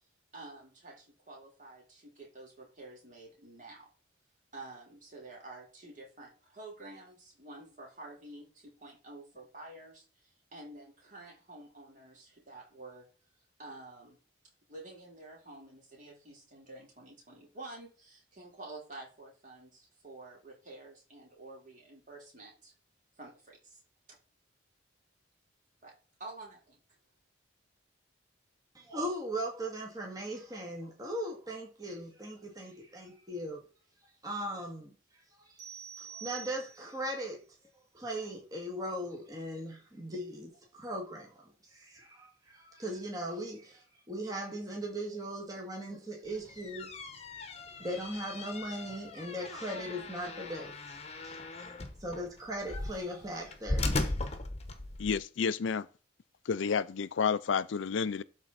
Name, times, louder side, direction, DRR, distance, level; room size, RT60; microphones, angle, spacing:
voice 1, 0.3-3.9 4.5-13.1 13.6-14.2 14.7-22.7 23.2-23.8 24.1-24.2 25.8-25.9 26.2-26.8, right 2 dB, 40° right, 4.2 m, -49 dB
voice 2, 28.7-33.6 34.2-34.9 36.1-37.4 37.9-41.3 41.7-46.9 47.8-50.7 51.2-51.4 52.0-54.1, right 1 dB, 20° right, 2.1 m, -38 dB
sound 1, 35.6-37.1, right 8 dB, 65° right, 2.5 m, -46 dB
sound 2, 46.3-55.2, left 2 dB, 35° left, 1.1 m, -38 dB
voice 3, 55.0-55.9 56.5-58.2, left 6 dB, 75° left, 0.4 m, -30 dB
12.5 x 4.4 x 4.2 m
head